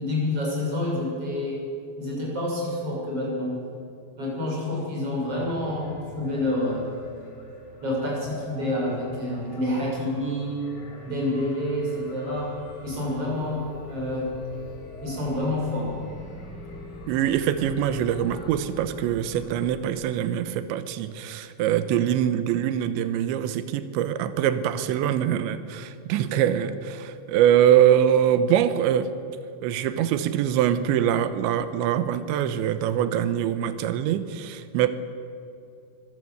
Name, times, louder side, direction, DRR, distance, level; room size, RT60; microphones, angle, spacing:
voice 1, 0.0-1.6 2.0-3.5 4.2-6.9 7.8-10.6 11.0-12.5 12.8-14.3 15.0-15.9, left 1 dB, 30° right, -4 dB, 7.6 m, -28 dB
sound 1, 5.2-19.7, left 1 dB, 80° left, 6.8 m, -43 dB
voice 2, 17.1-29.1 29.6-34.9, right 10 dB, 80° right, 11 dB, 3.1 m, -23 dB
24.0 x 15.5 x 7.9 m, 2.5 s
omnidirectional pair, 5.5 m